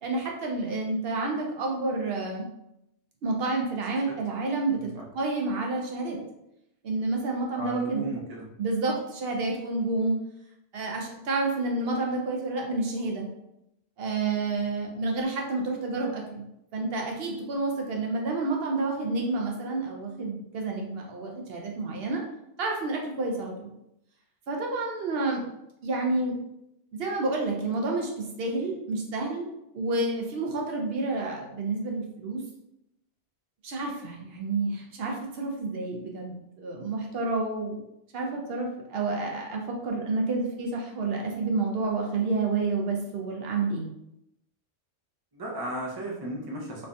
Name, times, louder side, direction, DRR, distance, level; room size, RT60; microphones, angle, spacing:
voice 1, 0.0-2.4 3.2-6.2 6.8-8.0 8.6-10.2 10.7-13.3 14.0-16.4 16.7-22.2 22.6-23.7 24.5-25.4 25.8-26.4 26.9-29.5 29.7-32.4 33.6-37.8 38.1-43.9, right 3 dB, 65° right, 0 dB, 0.7 m, -29 dB
voice 2, 7.5-8.5 45.3-46.9, right 1 dB, 35° right, -2 dB, 0.3 m, -35 dB
3.3 x 2.2 x 2.5 m, 0.84 s
omnidirectional pair, 1.2 m